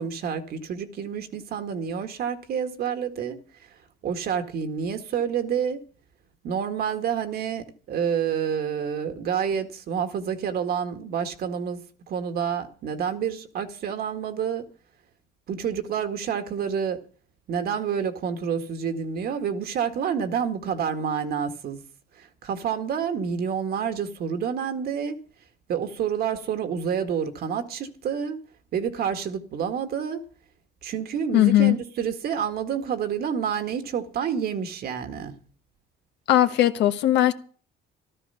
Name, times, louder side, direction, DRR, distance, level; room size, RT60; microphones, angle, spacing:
voice 1, 0.0-3.4 4.0-5.8 6.4-11.8 12.1-14.6 15.5-17.0 17.5-21.8 22.2-25.2 25.7-28.4 28.7-30.2 30.8-35.3, right 7 dB, 60° right, 1.9 m, -28 dB
voice 2, 31.3-31.8 36.3-37.3, left 13 dB, 75° left, 1.3 m, -19 dB
14.5 x 12.5 x 5.7 m
cardioid pair, 105°, 18 cm